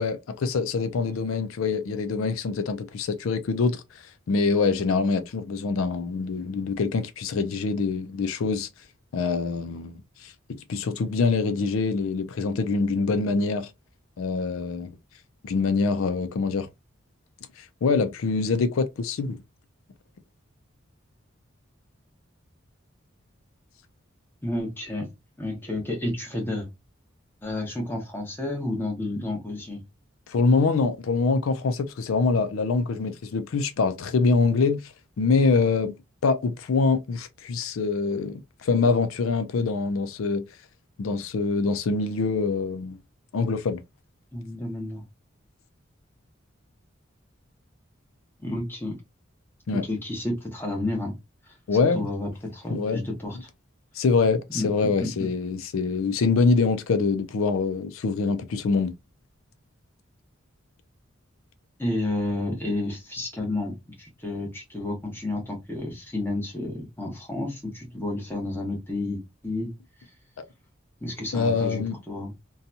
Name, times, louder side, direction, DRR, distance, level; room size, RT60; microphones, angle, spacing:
voice 1, 0.0-3.8 4.3-8.7 9.1-13.7 14.2-15.0 15.4-16.7 17.6-19.4 30.3-35.9 36.2-40.5 41.0-43.0 43.3-43.8 49.7-49.9 51.7-52.1 52.7-53.0 53.9-58.9 71.3-71.9, left 4 dB, 85° left, 0.4 m, -25 dB
voice 2, 24.4-25.1 25.4-26.7 27.4-29.8 44.3-45.0 48.4-49.0 49.7-51.1 51.5-51.6 51.9-53.5 54.5-54.7 55.0-55.3 61.8-69.7 71.0-72.3, left 2 dB, 10° left, 1.0 m, -31 dB
2.7 x 2.2 x 2.6 m
head